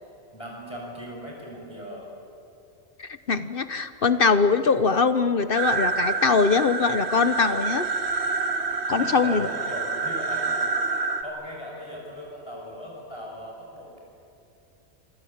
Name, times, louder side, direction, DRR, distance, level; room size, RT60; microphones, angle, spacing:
voice 1, 0.3-2.1 9.0-14.0, equal, 20° left, -2 dB, 6.1 m, -39 dB
voice 2, 3.0-7.9 8.9-9.5, left 4 dB, 50° left, 11 dB, 1.0 m, -22 dB
sound 1, 5.6-11.2, right 4 dB, 60° right, 1.9 m, -27 dB
28.0 x 24.5 x 8.7 m, 2.6 s
omnidirectional pair, 1.3 m